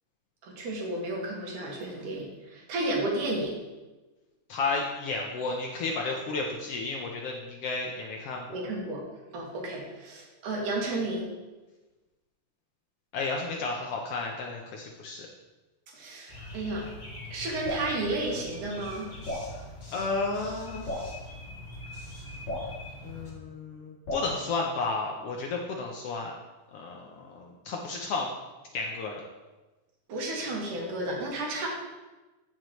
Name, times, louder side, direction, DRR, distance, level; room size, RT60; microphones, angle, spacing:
voice 1, 0.4-3.6 8.5-9.0 9.3-11.3 15.9-16.9 17.3-19.1 30.1-31.7, right 2 dB, 75° right, -1 dB, 3.1 m, -32 dB
voice 2, 4.5-8.6 13.1-15.3 19.9-20.9 23.0-26.4 26.7-28.3 28.7-29.2, left 3 dB, 80° left, 0 dB, 1.3 m, -32 dB
sound 1, 16.3-23.3, left 1 dB, 20° left, 1.3 m, -43 dB
Drip, 17.6-17.9 19.2-19.5 20.8-21.1 22.4-22.7 24.1-24.3, left 1 dB, 60° left, 4.2 m, -33 dB
14.0 x 6.0 x 3.1 m, 1.2 s
omnidirectional pair, 3.7 m